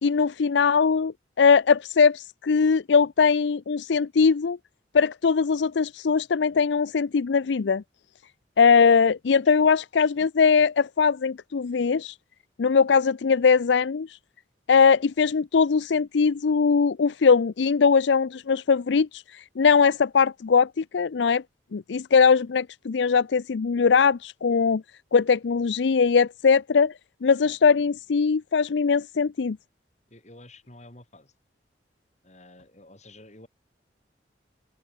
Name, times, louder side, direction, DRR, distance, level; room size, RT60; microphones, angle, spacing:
voice 1, 0.0-4.6 4.9-7.8 8.6-12.1 12.6-14.1 14.7-21.4 21.7-24.8 25.1-26.9 27.2-29.6, left 5 dB, 75° left, 0.5 m, -21 dB
voice 2, 30.1-31.3 32.2-33.5, left 1 dB, 40° left, 6.7 m, -50 dB
open air
head